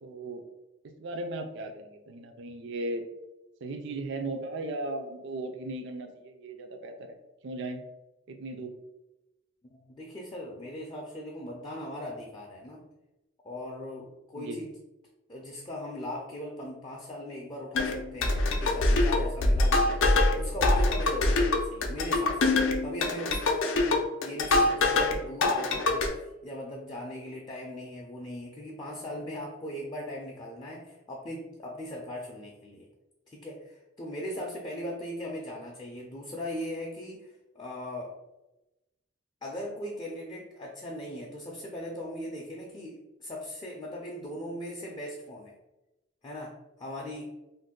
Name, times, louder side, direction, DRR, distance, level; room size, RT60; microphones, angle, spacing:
voice 1, 0.0-0.4 0.8-3.0 3.6-7.2 7.4-7.8 8.3-8.8 14.3-14.6, right 2 dB, 65° right, 6 dB, 0.4 m, -37 dB
voice 2, 9.6-12.8 13.4-14.7 15.3-22.5 22.8-32.9 33.3-38.1 39.4-45.5 46.2-47.3, left 1 dB, 25° left, -2 dB, 0.4 m, -39 dB
sound 1, 17.7-25.2 25.4-26.1, left 2 dB, 80° left, 0.5 m, -24 dB
2.6 x 2.1 x 3.6 m, 0.98 s
head